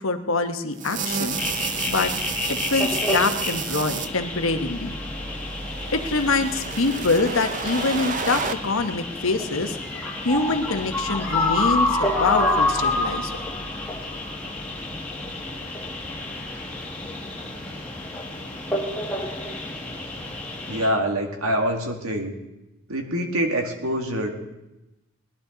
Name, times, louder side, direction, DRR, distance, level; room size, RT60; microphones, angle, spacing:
voice 1, 0.0-1.4 1.9-2.1 2.5-4.9 5.9-9.8 10.2-13.4, left 3 dB, 75° left, 7 dB, 1.1 m, -25 dB
sound 1, 0.8-4.1 5.2-8.5, right 6 dB, 35° right, 0.6 m, -31 dB
sound 2, 1.3-20.9, left 2 dB, 5° left, 1.9 m, -28 dB
voice 2, 20.7-22.3 22.9-24.4, equal, 85° right, 2 dB, 2.3 m, -25 dB
20.0 x 11.5 x 3.9 m, 0.96 s
head